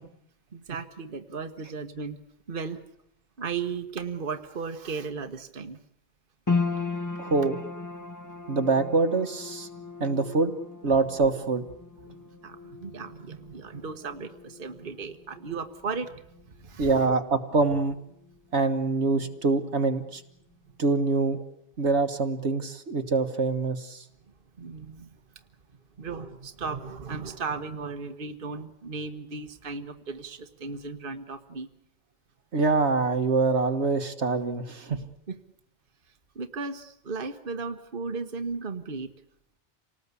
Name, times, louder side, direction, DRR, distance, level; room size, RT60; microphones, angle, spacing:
voice 1, 0.5-2.2 2.5-2.8 3.4-5.8 12.0-16.1 16.4-17.0 24.6-25.1 26.0-31.7 35.3-35.4 36.3-39.1, right 4 dB, 50° right, 7 dB, 1.5 m, -36 dB
sound 1, 6.5-18.9 19.1-20.1 20.5-20.6, left 4 dB, 15° left, 1.1 m, -37 dB
voice 2, 7.2-7.6 8.5-9.7 10.0-10.5 10.8-11.6 16.8-17.9 18.5-20.2 20.8-21.4 21.8-24.0 32.5-35.0, right 3 dB, 75° right, 8 dB, 1.8 m, -25 dB
28.5 x 19.0 x 8.4 m, 0.77 s
omnidirectional pair, 1.2 m